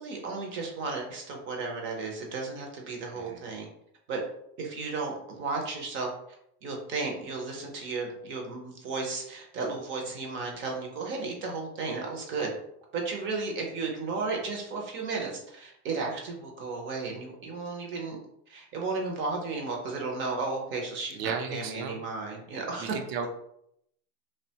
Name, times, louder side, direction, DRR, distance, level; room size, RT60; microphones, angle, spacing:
voice 1, 0.0-3.7 4.1-4.2 4.6-6.1 6.6-12.5 12.9-18.2 18.5-23.0, right 4 dB, 25° right, 1 dB, 0.4 m, -34 dB
voice 2, 3.1-3.5 21.1-22.0 22.8-23.3, right 6 dB, 85° right, 5 dB, 0.6 m, -34 dB
2.7 x 2.1 x 2.7 m, 0.74 s
supercardioid pair, 130°, 48 cm